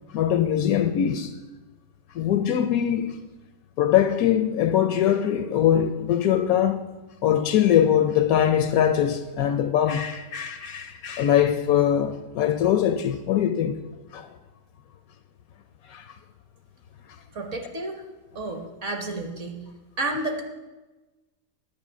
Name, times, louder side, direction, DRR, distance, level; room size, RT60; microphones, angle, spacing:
voice 1, 0.1-1.3 2.2-3.2 3.8-6.8 7.2-13.8 14.1-14.3 15.9-16.0, left 10 dB, 70° left, 0.9 m, -22 dB
voice 2, 17.3-18.0 18.3-19.6 20.0-20.4, right 2 dB, 50° right, 1.4 m, -31 dB
9.9 x 5.4 x 8.1 m
omnidirectional pair, 1.7 m